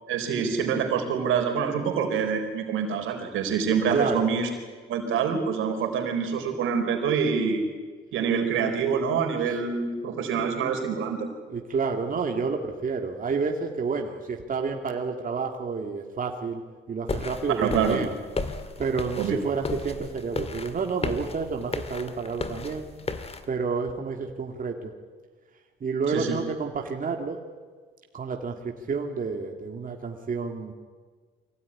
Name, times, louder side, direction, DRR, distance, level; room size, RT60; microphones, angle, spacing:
voice 1, 0.1-4.5 4.9-7.6 8.1-11.3 17.5-18.0 19.2-19.4 26.1-26.4, right 6 dB, 85° right, 4 dB, 4.2 m, -26 dB
voice 2, 3.9-4.3 9.5-9.6 11.5-16.6 16.9-18.1 18.8-22.9 23.5-24.9 25.8-27.4 28.1-30.7, right 5 dB, 45° right, 3 dB, 2.4 m, -29 dB
sound 1, 17.1-23.4, left 3 dB, 30° left, 2.0 m, -34 dB
24.0 x 16.5 x 10.0 m, 1.5 s
cardioid pair, 90°, 20 cm